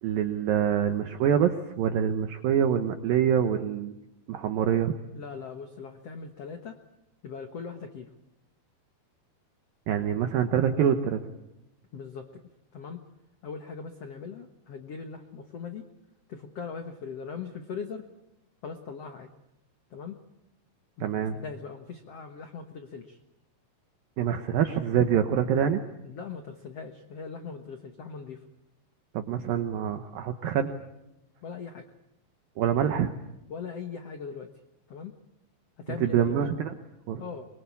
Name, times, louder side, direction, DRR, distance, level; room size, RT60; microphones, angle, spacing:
voice 1, 0.0-3.9 4.3-5.0 9.9-11.2 21.0-21.4 24.2-25.8 29.1-30.7 32.6-33.1 36.0-36.7 37.1-37.2, right 9 dB, 70° right, 7 dB, 2.5 m, -25 dB
voice 2, 5.1-6.8 7.2-8.1 11.9-12.4 12.7-13.0 13.4-15.8 16.3-18.0 18.6-19.3 19.9-20.2 21.0-23.2 26.0-28.4 31.4-31.9 33.5-34.5 34.9-35.1 35.8-36.4 37.2-37.5, left 5 dB, 80° left, 6 dB, 1.4 m, -40 dB
24.0 x 23.5 x 8.5 m, 0.91 s
omnidirectional pair, 5.0 m